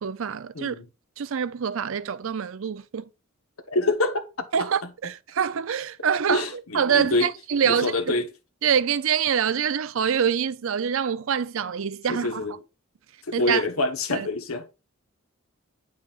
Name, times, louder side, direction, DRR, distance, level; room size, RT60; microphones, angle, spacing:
voice 1, 0.0-0.8 1.2-3.1 4.5-8.3 8.6-12.6 13.3-13.7 14.1-14.3, right 7 dB, 70° right, 0.5 m, -25 dB
voice 2, 3.7-4.2 6.3-6.5 6.9-7.3 7.8-8.2 12.1-12.5 13.3-14.6, left 2 dB, 80° left, 1.2 m, -25 dB
8.9 x 6.3 x 2.5 m
head